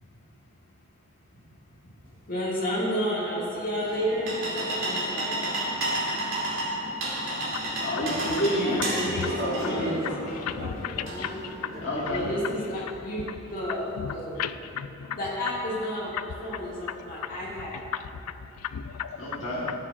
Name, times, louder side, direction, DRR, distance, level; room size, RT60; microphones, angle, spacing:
voice 1, 2.3-5.9 8.4-10.1 10.8-11.3 12.1-14.4 15.2-17.8, equal, 40° left, -6 dB, 1.9 m, -32 dB
sound 1, 3.8-11.8, right 1 dB, 60° right, 1.7 m, -31 dB
voice 2, 7.8-8.8 9.2-9.9 11.8-12.2 19.2-19.7, equal, 60° left, -6 dB, 1.4 m, -29 dB
voice 3, 10.4-11.3 14.0-14.1 14.4-15.2 18.7-19.1 19.6-19.7, left 8 dB, 85° left, 12 dB, 0.4 m, -33 dB
12.0 x 9.0 x 2.4 m, 2.8 s
head